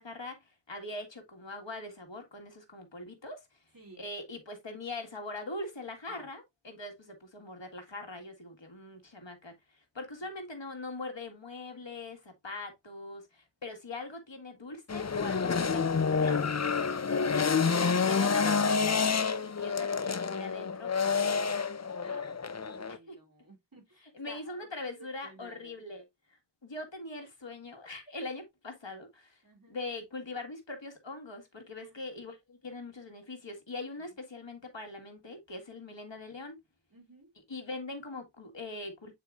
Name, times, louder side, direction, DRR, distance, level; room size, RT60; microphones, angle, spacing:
voice 1, 0.0-3.4 4.0-17.6 18.0-21.3 22.9-23.2 24.0-26.1 26.6-29.4 29.7-36.6 37.5-39.1, left 2 dB, 90° left, 1.8 m, -42 dB
sound 1, 14.9-23.0, left 5 dB, 40° left, 0.6 m, -28 dB
voice 2, 22.7-24.7 25.2-25.8 29.4-29.8 31.8-31.9 36.9-37.3, right 2 dB, 50° right, 3.2 m, -54 dB
8.6 x 4.7 x 2.5 m
wide cardioid pair, 40°, 43 cm